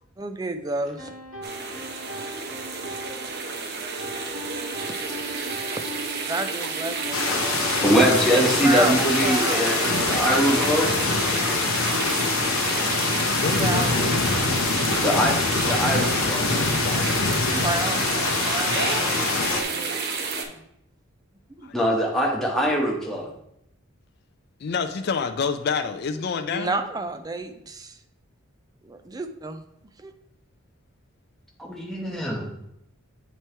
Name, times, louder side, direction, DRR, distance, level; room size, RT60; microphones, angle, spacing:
voice 1, 0.2-1.1 6.2-11.6 13.6-14.2 17.6-18.1 18.5-20.0 20.5-20.6 21.6-21.7 26.5-28.0 28.8-29.6 30.0-30.1, right 3 dB, 20° right, 7 dB, 0.4 m, -32 dB
sound 1, 1.0-12.1, equal, 70° right, 2.4 m, -39 dB
sound 2, 1.4-20.4, right 4 dB, 50° right, 0.8 m, -29 dB
sound 3, 7.1-19.6, left 4 dB, 80° left, 0.7 m, -25 dB
voice 2, 7.8-10.9 15.0-16.5 21.7-23.3 31.6-32.5, equal, ahead, -2 dB, 1.0 m, -22 dB
voice 3, 13.3-14.0 18.7-18.9 21.6-21.8 24.6-26.8, left 5 dB, 50° left, 6 dB, 0.4 m, -28 dB
8.2 x 3.0 x 4.4 m, 0.79 s
head